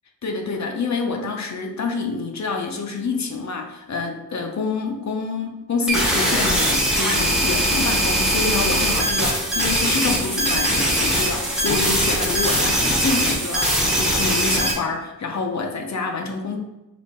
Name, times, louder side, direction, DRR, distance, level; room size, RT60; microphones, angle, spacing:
voice 1, 0.2-16.6, left 4 dB, 50° left, 3 dB, 0.5 m, -27 dB
sound 1, 5.9-14.7, equal, ahead, 0.8 m, -21 dB
sound 2, 8.8-13.8, right 4 dB, 55° right, 0.7 m, -34 dB
4.0 x 2.4 x 3.5 m, 1.0 s
wide cardioid pair, 105°, 36 cm